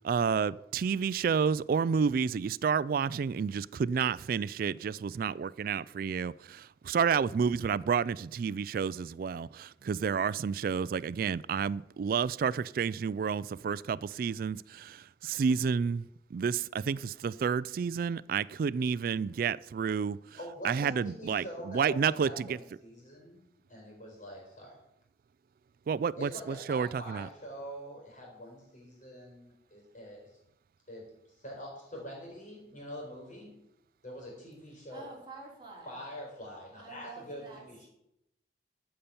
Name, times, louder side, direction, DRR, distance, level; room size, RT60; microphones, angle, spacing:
voice 1, 0.0-16.0 16.3-20.2 20.6-22.6 25.9-27.3, right 6 dB, 55° right, 0.3 m, -30 dB
voice 2, 20.3-24.8 26.2-30.4 30.9-33.5 34.0-35.0 35.9-37.9, equal, 45° left, 4.3 m, -45 dB
voice 3, 34.9-36.0 36.8-37.9, right 3 dB, 25° right, 3.2 m, -48 dB
14.0 x 5.8 x 6.9 m
head